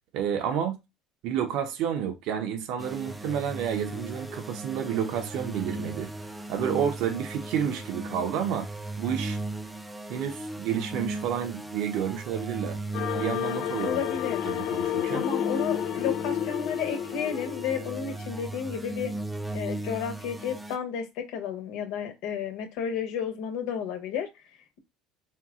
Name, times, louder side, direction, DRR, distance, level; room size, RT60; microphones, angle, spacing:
voice 1, 0.1-0.8 1.2-6.1 6.5-8.7 9.0-9.4 10.1-12.8 13.2-14.0 14.4-15.2, right 8 dB, 70° right, 0.8 m, -30 dB
sound 1, 2.8-20.8, right 2 dB, 5° right, 0.4 m, -37 dB
sound 2, 12.9-18.3, left 11 dB, 60° left, 0.3 m, -31 dB
voice 2, 13.8-14.5 15.1-19.1 19.5-24.3, left 7 dB, 80° left, 1.1 m, -32 dB
4.5 x 2.3 x 3.7 m
cardioid pair, 140°, 0 cm